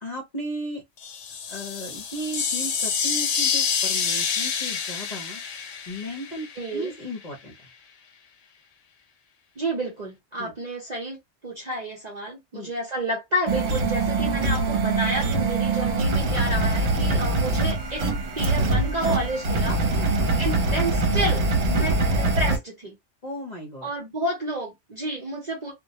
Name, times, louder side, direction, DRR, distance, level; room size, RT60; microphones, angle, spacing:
voice 1, 0.0-0.8 1.5-5.4 5.9-7.6 10.4-10.5 12.5-12.7 17.1-17.3 20.0-20.1 21.7-21.9 23.2-23.9, equal, 45° left, 0.7 m, -35 dB
sound 1, 1.0-6.9, left 6 dB, 75° left, 0.3 m, -27 dB
voice 2, 6.6-6.9 9.6-11.2 11.4-18.0 18.4-19.8 20.4-21.4 21.7-23.0 23.8-25.7, right 1 dB, 45° right, 0.7 m, -30 dB
sound 2, 13.5-22.6, right 2 dB, 75° right, 0.9 m, -23 dB
2.2 x 2.0 x 2.7 m
omnidirectional pair, 1.2 m